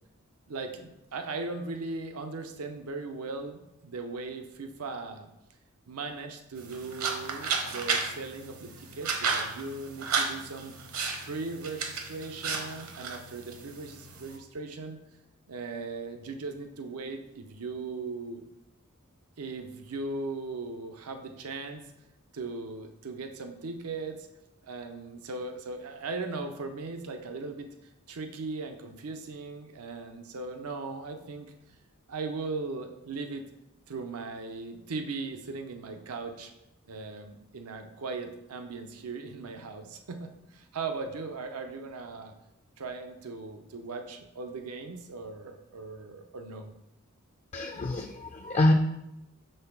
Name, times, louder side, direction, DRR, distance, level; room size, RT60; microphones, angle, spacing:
voice 1, 0.5-5.3 5.9-10.7 11.2-15.0 15.5-18.4 19.4-21.8 22.3-24.3 24.6-27.7 28.1-31.5 32.1-33.5 33.9-36.5 36.9-42.3 42.8-46.7, right 3 dB, 90° right, 6 dB, 0.6 m, -38 dB
sound 1, 6.6-14.4, right 5 dB, 75° right, 1.0 m, -33 dB
voice 2, 47.5-48.7, left 1 dB, 30° left, 4 dB, 0.3 m, -26 dB
5.5 x 3.9 x 5.8 m, 0.91 s
head